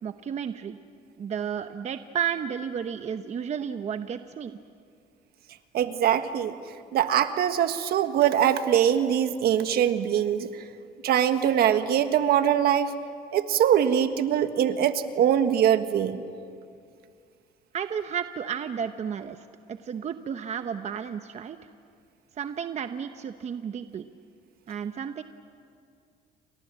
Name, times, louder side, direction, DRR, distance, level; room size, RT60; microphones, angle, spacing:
voice 1, 0.0-0.8 1.2-4.6 17.7-21.6 22.4-24.1 24.7-25.2, right 8 dB, 40° right, 9 dB, 0.9 m, -32 dB
voice 2, 5.7-6.6 6.9-10.6 11.0-12.9 13.3-16.2, right 9 dB, 65° right, 9 dB, 1.5 m, -23 dB
29.5 x 26.0 x 7.6 m, 2.4 s
cardioid pair, 110°, 17 cm